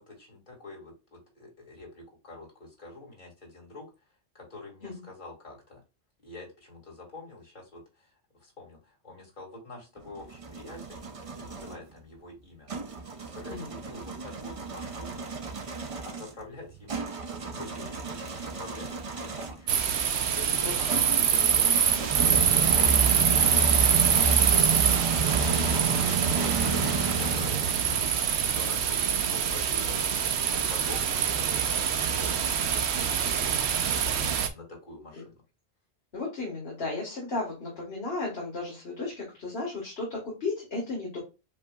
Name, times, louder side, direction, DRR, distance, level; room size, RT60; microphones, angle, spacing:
voice 1, 0.0-5.8 6.2-11.0 11.3-15.3 16.0-23.2 23.6-28.3 28.5-34.2 34.5-35.4, left 2 dB, 45° left, -2 dB, 2.4 m, -46 dB
sound 1, 10.0-11.8 12.7-19.7 20.9-28.2, right 4 dB, 35° right, 0.7 m, -31 dB
sound 2, 19.7-34.5, right 7 dB, 75° right, 0.9 m, -25 dB
voice 2, 36.1-41.2, left 3 dB, 65° left, -3 dB, 1.9 m, -34 dB
7.4 x 2.8 x 2.3 m, 0.28 s
omnidirectional pair, 1.1 m